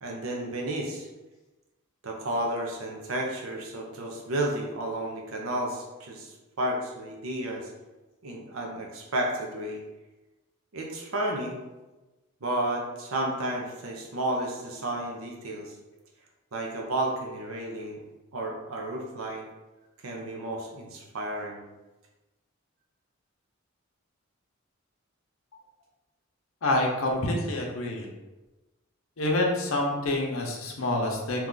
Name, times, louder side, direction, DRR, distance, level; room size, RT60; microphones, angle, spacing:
voice 1, 0.0-1.1 2.0-7.7 8.2-9.8 10.7-11.6 12.4-15.7 16.5-18.0 18.3-19.5 20.0-21.6, right 1 dB, 80° right, 0 dB, 0.7 m, -32 dB
voice 2, 26.6-28.1 29.2-31.5, left 1 dB, 75° left, 0 dB, 0.7 m, -27 dB
2.9 x 2.4 x 3.8 m, 1.1 s
head